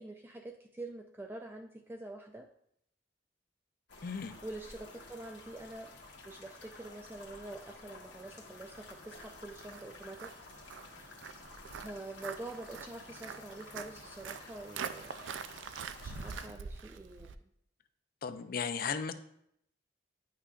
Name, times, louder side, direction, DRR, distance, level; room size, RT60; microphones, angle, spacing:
voice 1, 0.0-2.5 4.4-5.9 6.2-10.3 10.7-11.2 11.8-15.2 16.0-17.3, right 2 dB, 10° right, 3 dB, 0.3 m, -46 dB
sound 1, 3.9-16.5, left 3 dB, 70° left, 1.3 m, -52 dB
voice 2, 4.0-4.4 18.2-19.1, left 6 dB, 55° left, 11 dB, 0.4 m, -35 dB
Walk footsteps, 8.7-17.4, right 6 dB, 85° right, 0.4 m, -45 dB
9.7 x 5.7 x 2.4 m, 0.73 s
head